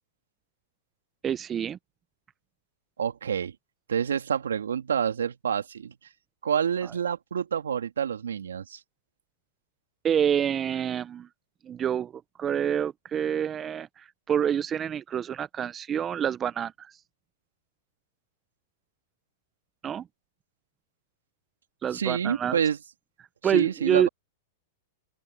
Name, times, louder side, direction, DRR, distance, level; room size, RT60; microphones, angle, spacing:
voice 1, 1.2-1.8 6.8-6.9 10.0-11.3 11.6-12.1 12.4-16.9 19.8-20.0 21.8-22.6 23.4-24.1, right 9 dB, 25° right, 1.0 m, -27 dB
voice 2, 3.0-3.5 3.9-5.9 6.4-8.8 21.9-22.8 23.5-24.1, right 8 dB, 85° right, 2.6 m, -28 dB
open air
hypercardioid pair, 105°, 0 cm